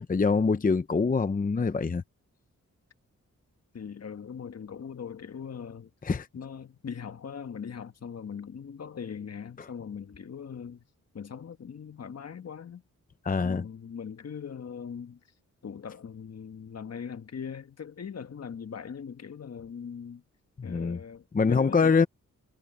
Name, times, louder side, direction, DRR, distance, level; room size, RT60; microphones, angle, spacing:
voice 1, 0.0-2.0 6.0-6.3 13.3-13.6 20.7-21.0 21.3-22.1, left 4 dB, 25° left, 0.7 m, -24 dB
voice 2, 3.7-5.9 6.3-10.8 11.1-12.8 13.4-15.2 15.6-20.2 20.6-22.1, left 7 dB, 55° left, 1.3 m, -40 dB
cardioid pair, 80°, 31 cm